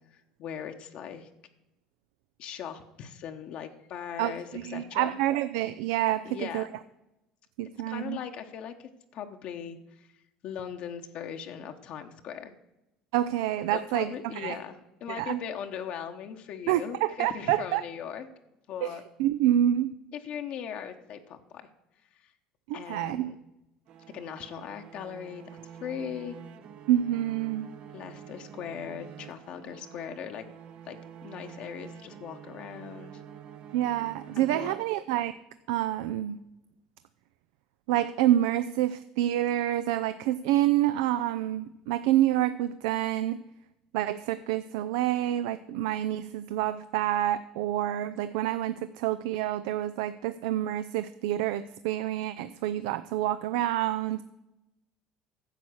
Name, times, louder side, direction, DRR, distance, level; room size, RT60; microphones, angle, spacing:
voice 1, 0.1-1.3 2.4-5.1 6.2-6.7 7.9-10.1 10.4-12.5 13.7-18.3 18.7-19.0 20.1-21.7 22.2-22.3 22.7-23.4 24.1-26.4 27.9-30.5 30.8-33.2 34.3-34.8, left 8 dB, 60° left, 5 dB, 1.0 m, -39 dB
voice 2, 4.2-6.7 7.6-8.2 13.1-14.6 15.1-15.4 16.7-17.8 18.8-18.9 19.2-19.9 22.7-23.3 26.9-27.7 33.7-35.3 35.7-36.4 37.9-43.4 43.9-54.2, right 13 dB, 80° right, 13 dB, 0.4 m, -27 dB
sound 1, 23.9-35.3, right 8 dB, 60° right, 0.7 m, -48 dB
10.5 x 7.1 x 6.2 m, 0.92 s
supercardioid pair, 85°, 2 cm